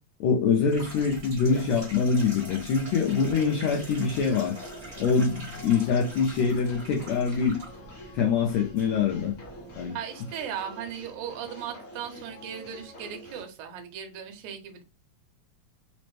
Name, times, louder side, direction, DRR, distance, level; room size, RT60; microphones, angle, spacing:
voice 1, 0.2-4.5 5.0-7.6 8.1-9.3 9.8-10.0, left 5 dB, 80° left, 1.7 m, -24 dB
sound 1, 0.7-9.9, right 1 dB, 30° right, 1.2 m, -44 dB
sound 2, 3.0-13.4, equal, 60° left, 1.0 m, -47 dB
voice 2, 9.9-14.8, right 8 dB, 75° right, 2.1 m, -37 dB
4.9 x 2.1 x 3.0 m
omnidirectional pair, 3.5 m